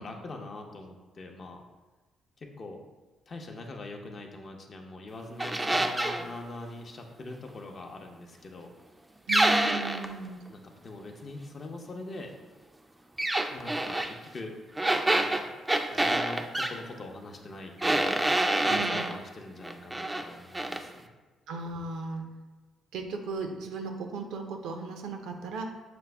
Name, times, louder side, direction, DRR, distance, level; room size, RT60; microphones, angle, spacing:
voice 1, 0.0-1.6 2.4-2.8 3.3-8.7 10.5-12.3 13.5-14.5 15.1-15.5 15.9-18.2 18.6-21.1, left 2 dB, 45° left, 3 dB, 0.6 m, -42 dB
sound 1, 5.4-6.3 9.3-10.1 13.2-14.1 14.8-16.7 17.8-19.1 19.6-20.3 20.5-20.8, right 1 dB, 15° right, 0.3 m, -27 dB
voice 2, 9.3-10.4 18.7-19.1 21.5-22.2 22.9-25.7, right 3 dB, 85° right, 4 dB, 0.5 m, -36 dB
5.9 x 2.0 x 3.3 m, 1.2 s
cardioid pair, 90°, 0 cm